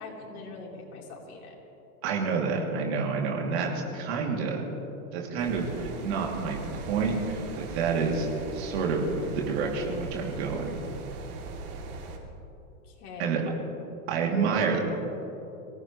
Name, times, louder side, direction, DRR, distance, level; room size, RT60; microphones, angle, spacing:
voice 1, 0.0-1.6 12.8-13.4, left 4 dB, 75° left, -3 dB, 4.3 m, -42 dB
voice 2, 2.0-4.6 5.1-6.6 6.9-11.0 13.2-13.4 14.1-14.8, right 5 dB, 45° right, -1 dB, 3.0 m, -28 dB
sound 1, 5.4-12.2, right 3 dB, 80° right, 3.1 m, -39 dB
25.0 x 17.5 x 3.3 m, 3.0 s
supercardioid pair, 165°, 44 cm